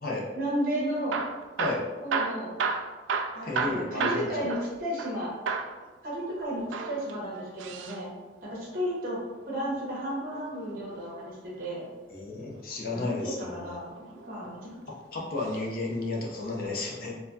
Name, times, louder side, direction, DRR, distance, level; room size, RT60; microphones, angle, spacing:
voice 1, 0.3-1.2 2.0-2.6 3.3-5.3 6.0-8.1 8.4-11.9 12.9-14.8, equal, 50° right, -5 dB, 1.2 m, -33 dB
Hammer / Drill, 1.0-5.2 5.5-5.8 6.6-8.0 9.8-11.0 12.7-13.2 13.9-14.7 15.4-15.6 15.9-16.0 16.7-16.8, right 5 dB, 90° right, 0.3 m, -33 dB
voice 2, 3.4-4.3 12.1-13.8 15.1-17.2, left 2 dB, 50° left, -2 dB, 0.6 m, -33 dB
4.1 x 2.2 x 2.7 m, 1.3 s
head